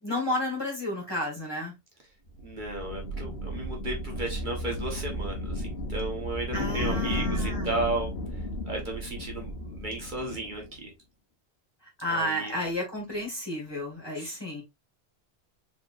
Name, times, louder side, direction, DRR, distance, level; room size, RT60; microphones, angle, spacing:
voice 1, 0.0-1.7 6.5-7.7 12.0-14.6, left 1 dB, 25° left, 2.0 m, -32 dB
sound 1, 2.3-10.8, left 1 dB, 75° left, 1.3 m, -34 dB
voice 2, 2.4-8.1 8.6-10.9 12.1-12.5 14.2-14.4, right 2 dB, 50° right, 1.4 m, -34 dB
4.7 x 3.6 x 2.5 m
omnidirectional pair, 1.1 m